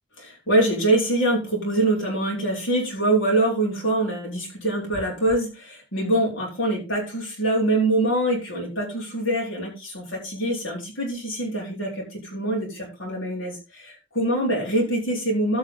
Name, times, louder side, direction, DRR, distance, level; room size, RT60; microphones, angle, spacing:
voice 1, 0.2-15.6, right 1 dB, 65° left, -3 dB, 4.0 m, -24 dB
14.5 x 5.5 x 3.8 m, 0.29 s
head